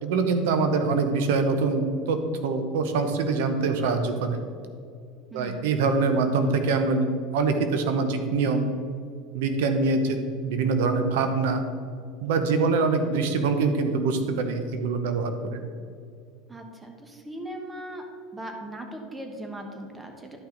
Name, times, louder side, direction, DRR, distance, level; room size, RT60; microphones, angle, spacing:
voice 1, 0.0-4.4 5.3-7.1 7.3-8.7 9.3-11.6 12.2-15.6, right 4 dB, 85° right, 7 dB, 0.8 m, -24 dB
voice 2, 5.3-5.7 16.5-18.0 18.3-20.4, right 1 dB, 10° right, 4 dB, 1.1 m, -39 dB
11.5 x 5.8 x 3.9 m, 2.3 s
supercardioid pair, 135°, 0 cm